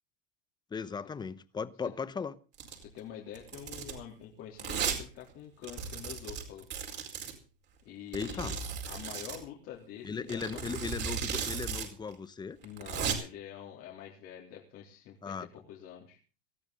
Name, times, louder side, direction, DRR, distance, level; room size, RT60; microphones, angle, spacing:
voice 1, 0.7-2.3 8.1-8.6 10.0-12.6 15.2-15.5, left 5 dB, 15° left, 0.9 m, -37 dB
Domestic sounds home sounds, 2.5-2.8 3.3-4.0 4.6-5.0 5.3-5.4 5.6-7.3 8.1-9.4 10.3-11.9 12.1-12.2 12.6-13.1, right 7 dB, 35° right, 4.6 m, -35 dB
voice 2, 2.8-6.7 7.8-8.5 8.9-10.7 12.6-15.4 15.7-16.2, left 10 dB, 50° left, 3.6 m, -46 dB
19.5 x 14.0 x 4.0 m
supercardioid pair, 140°, 30 cm